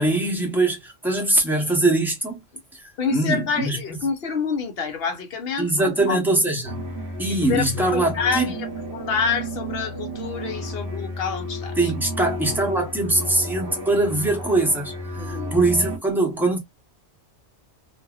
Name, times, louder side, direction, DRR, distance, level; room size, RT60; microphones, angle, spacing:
voice 1, 0.0-2.4 2.8-3.8 5.6-6.9 7.2-8.5 11.8-16.6, right 2 dB, ahead, 0.9 m, -22 dB
voice 2, 3.0-6.2 7.5-11.8 15.1-15.6, left 5 dB, 55° left, 0.9 m, -27 dB
sound 1, 6.6-16.0, equal, 50° right, 1.1 m, -32 dB
2.8 x 2.6 x 2.3 m
omnidirectional pair, 1.2 m